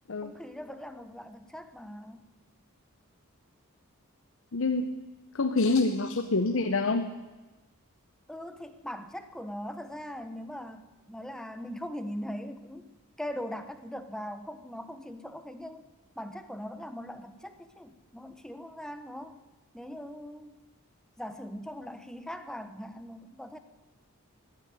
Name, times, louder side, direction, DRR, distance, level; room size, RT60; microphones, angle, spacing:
voice 1, 0.2-2.2 8.3-12.8 13.2-15.8 16.2-19.4 19.7-20.5 21.2-23.6, equal, 5° left, 9 dB, 0.8 m, -40 dB
voice 2, 4.5-4.9 5.3-7.1, left 3 dB, 65° left, 6 dB, 0.8 m, -26 dB
14.5 x 9.8 x 9.5 m, 1.2 s
head